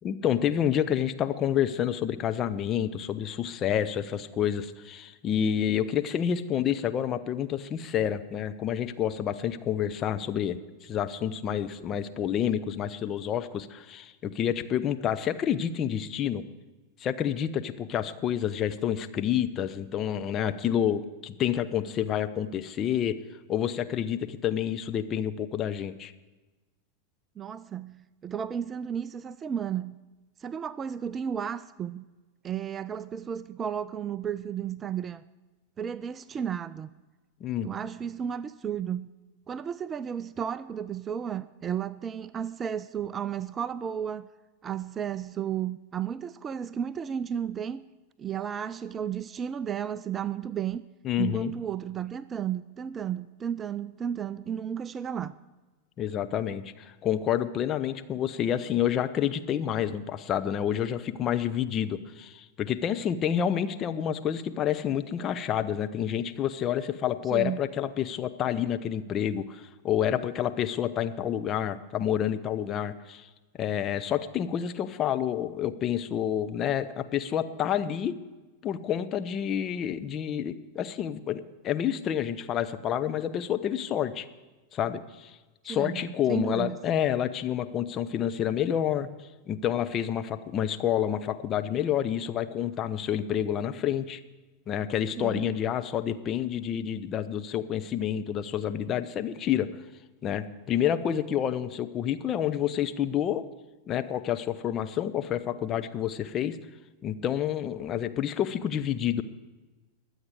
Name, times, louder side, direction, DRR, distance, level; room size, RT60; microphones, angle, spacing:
voice 1, 0.0-16.4 17.0-23.2 23.5-26.1 37.4-37.7 51.0-51.5 56.0-73.3 73.6-78.1 78.6-84.3 84.7-85.4 85.6-89.1 89.5-94.2 94.7-99.7 100.2-103.5 103.9-106.6 107.0-109.2, left 9 dB, 30° left, 0.7 m, -29 dB
voice 2, 27.4-30.0 30.4-32.0 32.4-35.2 35.8-36.9 37.6-39.1 39.5-44.3 44.6-47.8 48.2-50.8 51.2-55.3 67.3-67.6 85.7-86.8 95.2-95.6, right 8 dB, 20° right, 0.4 m, -33 dB
22.5 x 8.1 x 4.8 m
figure-of-eight pair, 90°, 0 cm